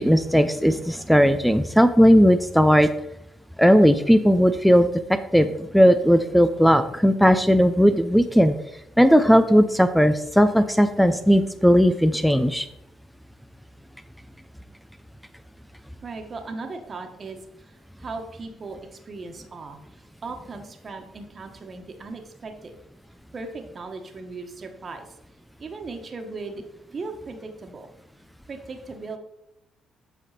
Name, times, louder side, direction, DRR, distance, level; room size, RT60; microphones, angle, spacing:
voice 1, 0.0-2.9 3.6-4.9 5.3-8.6 9.0-12.7, equal, ahead, 10 dB, 0.6 m, -17 dB
voice 2, 16.0-17.4 18.0-19.8 20.2-22.8 23.3-25.1 25.6-26.6 26.9-27.9 28.5-29.2, right 3 dB, 40° right, 5 dB, 1.5 m, -37 dB
8.0 x 5.8 x 4.2 m, 0.81 s
supercardioid pair, 60°, 0 cm